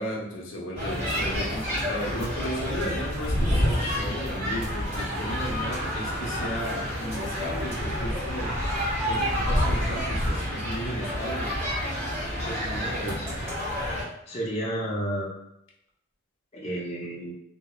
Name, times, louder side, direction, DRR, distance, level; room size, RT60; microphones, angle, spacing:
voice 1, 0.0-8.6 9.0-11.5, equal, 80° left, -3 dB, 0.7 m, -34 dB
sound 1, 0.7-14.0, equal, 30° right, 1.5 m, -29 dB
sound 2, 5.1-12.7, right 2 dB, 80° right, 0.4 m, -41 dB
voice 2, 12.4-13.3 14.3-15.3 16.5-17.3, right 1 dB, 30° left, -5 dB, 0.5 m, -32 dB
2.9 x 2.0 x 2.3 m, 0.80 s
head